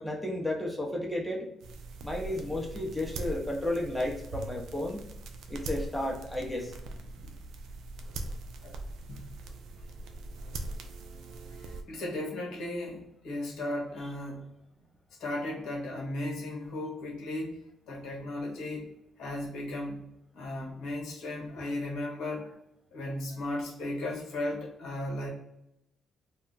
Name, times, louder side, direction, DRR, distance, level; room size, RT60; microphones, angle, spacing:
voice 1, 0.0-1.5 2.0-5.0 5.5-6.7, left 1 dB, ahead, 0 dB, 0.7 m, -33 dB
sound 1, 1.6-11.8, right 2 dB, 80° right, 0.4 m, -41 dB
voice 2, 11.6-14.5 15.2-18.9 19.2-20.0 20.3-22.5 22.9-25.3, left 1 dB, 75° left, -2 dB, 0.8 m, -36 dB
2.2 x 2.1 x 3.8 m, 0.83 s
cardioid pair, 90°, 0 cm